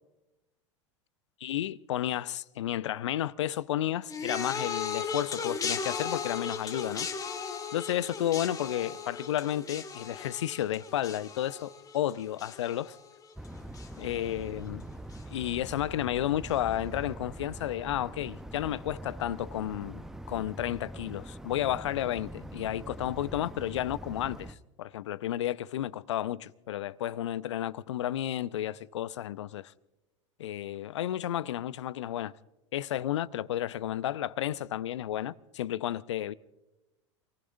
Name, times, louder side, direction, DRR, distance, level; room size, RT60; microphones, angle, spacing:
voice 1, 1.4-7.1 7.7-13.0 14.0-14.9 15.3-29.7 30.4-32.3 32.7-36.3, left 12 dB, 65° left, 0.6 m, -32 dB
sound 1, 4.1-13.5 13.7-14.3 15.1-15.2, left 5 dB, 20° left, 1.4 m, -37 dB
sound 2, 13.4-24.5, right 1 dB, 5° right, 0.8 m, -43 dB
27.5 x 19.5 x 2.6 m
figure-of-eight pair, 85°, 16 cm